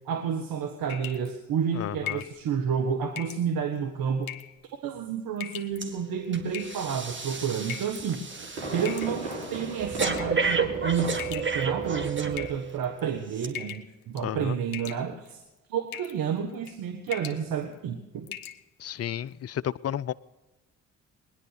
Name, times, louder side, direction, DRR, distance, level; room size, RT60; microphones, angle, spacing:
voice 1, 0.0-4.3 4.6-8.3 8.7-15.4 15.7-18.3, right 7 dB, 60° right, 5 dB, 1.5 m, -30 dB
sound 1, 0.9-1.3 2.1-2.4 3.2-3.4 4.2-4.6 5.4-5.8 6.5-7.0 7.7-8.0 8.9-9.4 10.0-10.4 11.2-11.8 12.3-13.0 13.5-13.9 14.2-14.4 14.7-15.3 15.9-16.2 16.5-16.8 17.1-17.4 17.8-17.9 18.3-18.6, left 12 dB, 60° left, 1.4 m, -39 dB
voice 2, 1.7-2.2 14.2-14.6 18.8-20.1, left 10 dB, 40° left, 19 dB, 0.6 m, -32 dB
Breathing, 5.8-6.0 6.3-12.8 13.3-13.5, right 5 dB, 30° right, 2.1 m, -32 dB
Fireworks, 8.3-11.5 11.8-12.2 12.5-12.6, right 1 dB, 80° right, 4.5 m, -36 dB
20.0 x 10.5 x 6.6 m, 1.1 s
hypercardioid pair, 50°, 38 cm